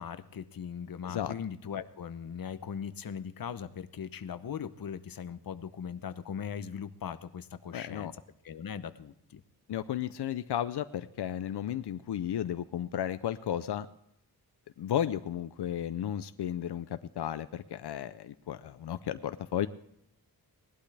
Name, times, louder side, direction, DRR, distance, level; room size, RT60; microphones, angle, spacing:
voice 1, 0.0-8.1 8.4-9.4, left 7 dB, 60° left, 12 dB, 0.8 m, -39 dB
voice 2, 7.7-8.1 9.7-13.9 14.8-19.7, left 10 dB, 90° left, 12 dB, 0.6 m, -34 dB
19.0 x 11.5 x 3.3 m, 0.78 s
wide cardioid pair, 120°, 39 cm